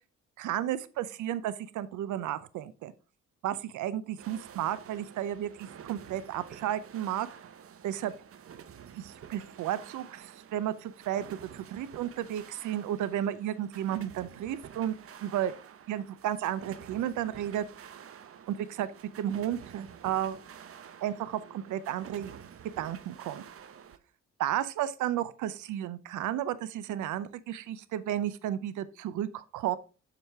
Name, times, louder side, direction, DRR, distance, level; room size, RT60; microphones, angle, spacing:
voice 1, 0.4-2.9 3.4-7.3 7.8-8.1 8.9-14.9 15.2-15.5 15.9-17.9 18.5-18.9 19.2-20.4 21.0-22.3 22.8-23.4 24.4-29.8, right 11 dB, 80° right, 0.7 m, -33 dB
sound 1, 4.2-24.0, right 8 dB, 50° right, 0.7 m, -49 dB
7.3 x 5.0 x 3.5 m
cardioid pair, 90°, 30 cm